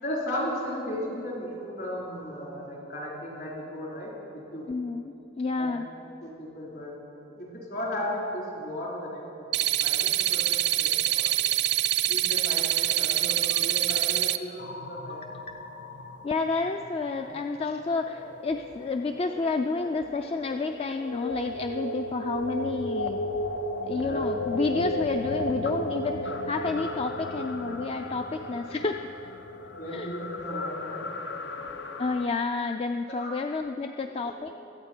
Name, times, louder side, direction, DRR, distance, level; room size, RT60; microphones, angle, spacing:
voice 1, 0.0-4.7 5.6-5.7 6.2-6.9 7.2-9.2 9.5-11.3 12.1-15.3 17.1-17.3 23.9-24.3 29.8-31.2 31.7-31.8 33.1-33.4 34.2-34.3, left 1 dB, 60° left, -4 dB, 3.9 m, -36 dB
voice 2, 4.7-5.9 15.5-15.6 16.2-23.2 23.9-29.1 29.9-30.1 32.0-34.5, left 3 dB, 30° left, 6 dB, 0.3 m, -30 dB
sound 1, 9.5-14.4, right 13 dB, 65° right, 0.4 m, -25 dB
sound 2, 14.6-32.3, left 1 dB, 80° left, 0.7 m, -35 dB
22.5 x 8.4 x 4.4 m, 2.8 s
head